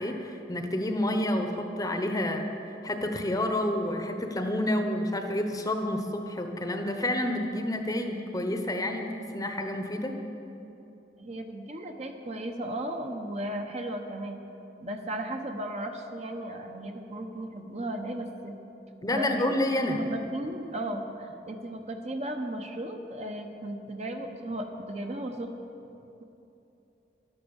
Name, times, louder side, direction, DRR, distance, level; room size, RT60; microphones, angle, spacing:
voice 1, 0.0-2.4 2.8-10.2 19.0-20.0, left 1 dB, 20° left, 5 dB, 1.0 m, -29 dB
voice 2, 11.2-14.4 14.8-18.6 19.1-19.4 20.0-25.5, right 1 dB, 35° right, 4 dB, 1.0 m, -36 dB
12.0 x 12.0 x 7.2 m, 2.9 s
head